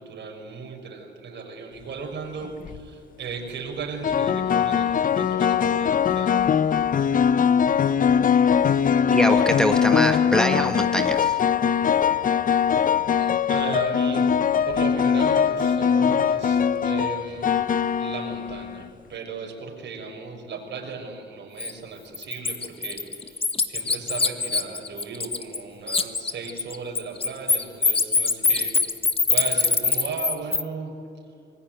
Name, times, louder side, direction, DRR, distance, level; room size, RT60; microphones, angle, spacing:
voice 1, 0.0-6.5 13.2-14.3 14.6-29.0 29.3-31.0, right 5 dB, 65° right, 3 dB, 6.0 m, -36 dB
sound 1, 2.4-2.8 4.0-18.9, left 7 dB, 45° left, 0.8 m, -21 dB
voice 2, 9.1-11.4, equal, 5° left, 5 dB, 1.5 m, -24 dB
Bird, 21.6-21.7 22.1-25.6 25.9-30.6, left 4 dB, 30° left, 1.6 m, -23 dB
26.0 x 20.5 x 9.2 m, 2.4 s
cardioid pair, 90°, 20 cm